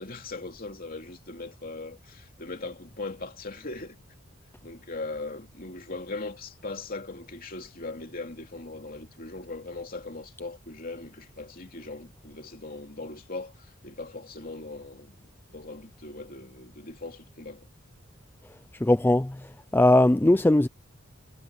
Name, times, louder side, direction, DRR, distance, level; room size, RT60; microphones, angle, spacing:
voice 1, 0.0-4.0 4.6-17.7, left 3 dB, 45° left, 2.9 m, -39 dB
voice 2, 18.8-20.7, left 1 dB, 10° left, 0.4 m, -20 dB
head